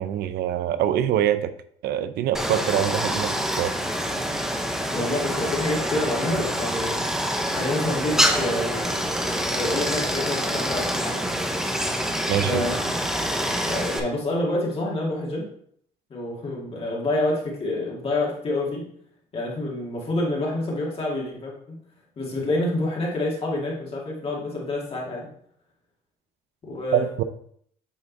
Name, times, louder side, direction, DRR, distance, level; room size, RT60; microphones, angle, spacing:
voice 1, 0.0-1.5 1.8-3.7 12.3-12.6 26.9-27.2, right 11 dB, 75° right, 12 dB, 0.6 m, -24 dB
Stream, 2.3-14.0, equal, 5° right, 0.9 m, -26 dB
voice 2, 4.9-7.0 7.5-11.6 12.4-12.8 13.7-15.4 16.1-18.8 19.3-21.8 22.2-25.3 26.6-27.0, left 2 dB, 35° left, -3 dB, 2.1 m, -28 dB
8.7 x 3.6 x 4.0 m, 0.65 s
cardioid pair, 110°, 17 cm